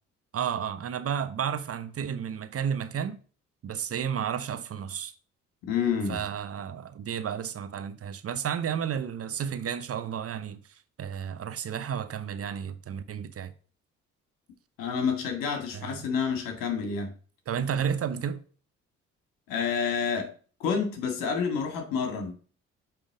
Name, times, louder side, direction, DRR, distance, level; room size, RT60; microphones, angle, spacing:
voice 1, 0.3-3.2 3.6-5.1 6.1-13.5 15.7-16.0 17.5-18.4, right 8 dB, 40° right, 0.8 m, -32 dB
voice 2, 5.6-6.3 14.8-17.1 19.5-20.3 20.6-22.3, left 6 dB, 65° left, 2.0 m, -29 dB
8.8 x 3.5 x 5.0 m
hypercardioid pair, 45°, 36 cm